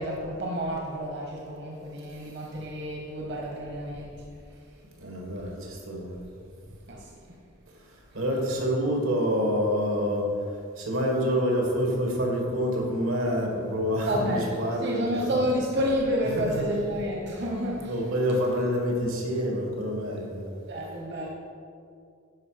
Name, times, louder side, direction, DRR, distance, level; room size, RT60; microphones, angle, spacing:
voice 1, 0.0-4.2 6.9-7.1 14.0-18.2 20.7-21.3, equal, 55° right, -1 dB, 1.0 m, -30 dB
voice 2, 5.0-6.2 8.1-10.3 10.8-15.2 16.3-16.6 17.4-17.5 17.7-20.5, equal, 85° right, -1 dB, 2.2 m, -27 dB
12.0 x 4.9 x 5.1 m, 2.3 s
head